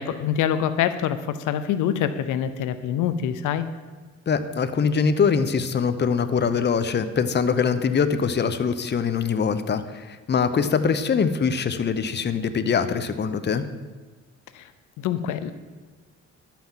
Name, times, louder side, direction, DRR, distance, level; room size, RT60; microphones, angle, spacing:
voice 1, 0.0-3.7 14.5-14.7 15.0-15.5, left 9 dB, 85° left, 12 dB, 0.7 m, -25 dB
voice 2, 4.3-13.6, left 6 dB, 35° left, 11 dB, 0.8 m, -23 dB
11.5 x 5.9 x 7.3 m, 1.3 s
cardioid pair, 90°, 30 cm